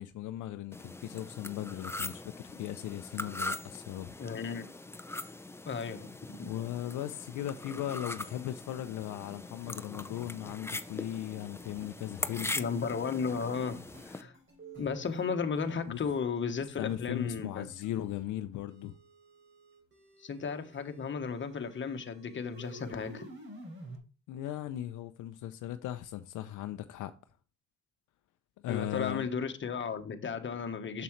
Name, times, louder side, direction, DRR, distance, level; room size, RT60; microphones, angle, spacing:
voice 1, 0.0-4.1 6.4-12.6 15.9-16.0 16.8-19.0 23.9-24.0 24.3-27.1 28.6-29.3, left 12 dB, 80° left, 0.6 m, -38 dB
sound 1, 0.7-14.2, left 2 dB, 10° left, 0.5 m, -41 dB
voice 2, 4.2-4.6 5.6-6.5 12.5-14.3 14.8-17.6 20.2-23.2 28.7-31.0, left 5 dB, 40° left, 1.2 m, -34 dB
sound 2, 9.6-18.3 18.7-24.0, right 1 dB, 40° right, 3.7 m, -53 dB
7.0 x 6.9 x 3.1 m
cardioid pair, 90°, 30 cm